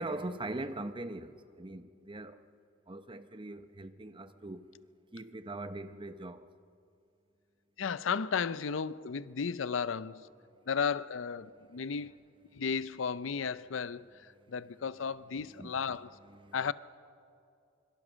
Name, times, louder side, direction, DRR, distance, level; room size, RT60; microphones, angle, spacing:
voice 1, 0.0-2.4 2.9-4.7 5.1-6.5 15.5-15.7 16.2-16.6, right 2 dB, 25° right, 0.9 m, -41 dB
voice 2, 7.8-10.3 10.7-12.2 12.5-16.1 16.5-16.7, left 6 dB, 85° left, 0.6 m, -34 dB
24.5 x 23.5 x 6.3 m
head